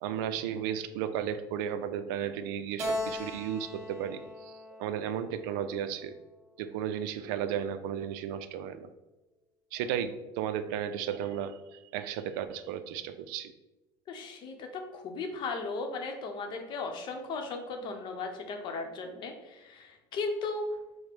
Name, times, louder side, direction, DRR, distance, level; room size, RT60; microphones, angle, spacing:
voice 1, 0.0-6.1 6.6-8.9 9.7-13.5, right 9 dB, 85° right, 10 dB, 0.4 m, -34 dB
Keyboard (musical), 2.8-6.2, left 1 dB, 20° right, 1.1 m, -38 dB
voice 2, 14.1-20.8, left 3 dB, 45° left, 4 dB, 0.7 m, -36 dB
5.0 x 2.1 x 4.5 m, 1.0 s
cardioid pair, 130°, 11 cm